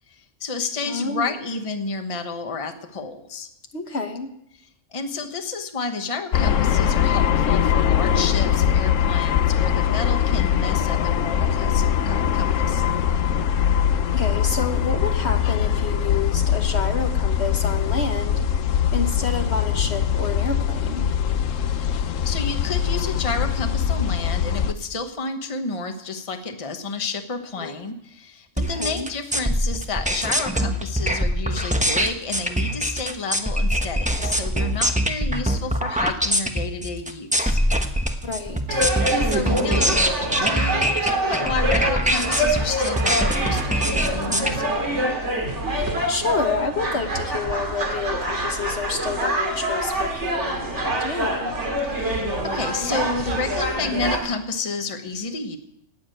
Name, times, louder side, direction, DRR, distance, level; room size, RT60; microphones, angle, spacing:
voice 1, 0.1-3.5 4.9-12.8 22.0-37.6 39.2-40.1 40.4-45.2 51.8-55.6, left 4 dB, 25° left, 6 dB, 1.1 m, -31 dB
voice 2, 0.8-1.3 3.7-4.3 5.2-5.3 14.1-18.5 18.9-21.1 27.6-27.8 28.6-29.1 34.2-34.3 38.2-38.9 46.1-51.6, left 4 dB, 60° left, 6 dB, 1.4 m, -29 dB
sound 1, 6.3-24.7, left 8 dB, 85° left, 1.1 m, -22 dB
sound 2, 28.6-44.5, equal, 5° right, 1.1 m, -23 dB
sound 3, 38.7-54.2, right 1 dB, 65° right, 2.9 m, -25 dB
18.0 x 7.3 x 9.1 m, 0.79 s
omnidirectional pair, 1.3 m